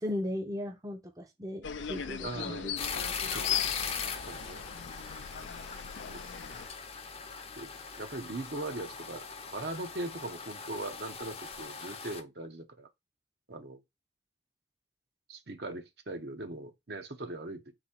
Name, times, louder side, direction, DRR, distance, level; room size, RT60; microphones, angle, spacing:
voice 1, 0.0-2.7, left 1 dB, 20° right, 0.6 m, -37 dB
sound 1, 1.6-6.7, left 9 dB, 85° left, 0.5 m, -38 dB
voice 2, 2.2-2.8 3.3-4.6 6.1-6.2 6.5-6.6 7.6-7.7 8.0-9.3 9.5-12.9 13.5-13.8 15.3-17.6, right 2 dB, 60° right, 0.9 m, -40 dB
sound 2, 2.8-12.2, left 5 dB, 30° left, 0.6 m, -40 dB
4.0 x 2.8 x 4.2 m
head